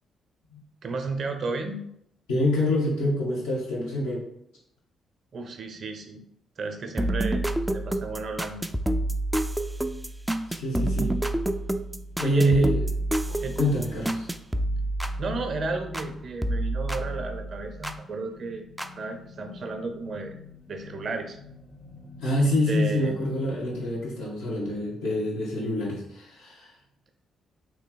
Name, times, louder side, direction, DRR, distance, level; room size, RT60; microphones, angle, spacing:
voice 1, 0.8-1.8 5.3-6.2 6.6-7.5 7.7-8.6 12.2-12.7 13.4-13.6 15.2-18.7 18.9-20.3 20.7-21.4 22.7-23.2, right 3 dB, 50° right, 6 dB, 0.6 m, -33 dB
voice 2, 2.3-4.2 10.5-11.1 12.2-12.9 13.6-14.3 22.2-26.7, equal, 80° left, -6 dB, 1.4 m, -26 dB
sound 1, 7.0-16.1 16.4-18.0 18.8-18.9, right 1 dB, 5° right, 0.4 m, -28 dB
sound 2, 11.5-24.2, left 4 dB, 60° left, 1.6 m, -49 dB
3.2 x 3.2 x 3.9 m, 0.74 s
figure-of-eight pair, 40°, 0 cm